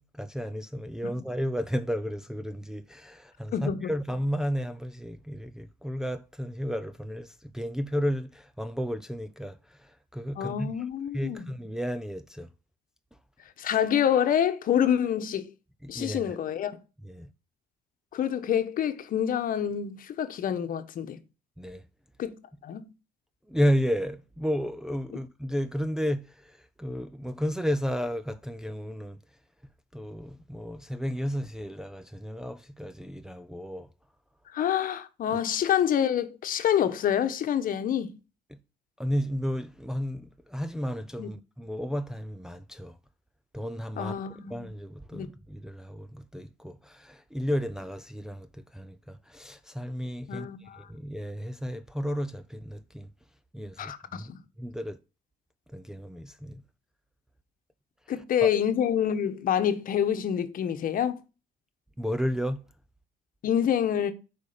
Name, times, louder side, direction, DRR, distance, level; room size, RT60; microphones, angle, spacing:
voice 1, 0.0-9.6 9.8-10.7 11.1-12.5 15.8-16.4 17.0-17.3 21.6-21.8 23.5-29.2 29.9-33.9 35.3-35.4 39.0-43.0 43.5-44.1 44.5-50.5 50.8-53.1 53.5-54.3 54.6-55.0 55.7-56.6 58.4-58.5 62.0-62.6, equal, 5° right, 0.6 m, -32 dB
voice 2, 3.5-3.9 10.4-11.5 13.6-15.5 15.9-16.8 18.1-21.2 22.2-22.4 22.6-22.9 34.5-38.1 41.2-41.3 44.0-44.7 45.1-45.3 50.3-50.9 53.8-54.4 58.1-61.2 63.4-64.1, left 9 dB, 55° left, 1.2 m, -27 dB
8.3 x 5.1 x 5.1 m
cardioid pair, 110°, 17 cm